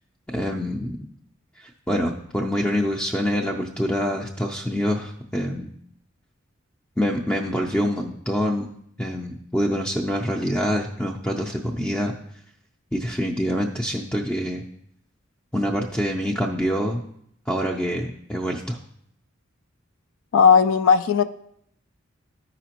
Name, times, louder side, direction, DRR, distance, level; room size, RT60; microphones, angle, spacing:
voice 1, 0.3-1.0 1.6-5.7 7.0-8.7 9.0-12.1 12.9-14.6 15.5-17.0 17.5-18.8, equal, 5° left, -1 dB, 0.5 m, -25 dB
voice 2, 20.3-21.2, left 6 dB, 75° left, 10 dB, 0.4 m, -16 dB
13.0 x 5.0 x 2.9 m, 0.72 s
head